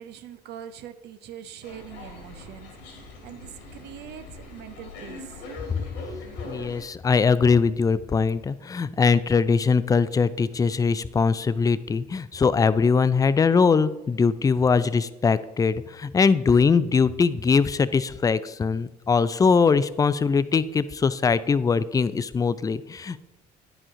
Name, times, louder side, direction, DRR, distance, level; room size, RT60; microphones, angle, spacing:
voice 1, 0.0-2.7 3.2-5.4, right 9 dB, 60° right, 10 dB, 0.5 m, -42 dB
sound 1, 1.6-6.9, left 2 dB, 70° left, 1.6 m, -41 dB
voice 2, 6.5-23.2, left 5 dB, 20° left, 16 dB, 0.4 m, -21 dB
9.8 x 5.0 x 3.7 m, 1.0 s
hypercardioid pair, 55°, 20 cm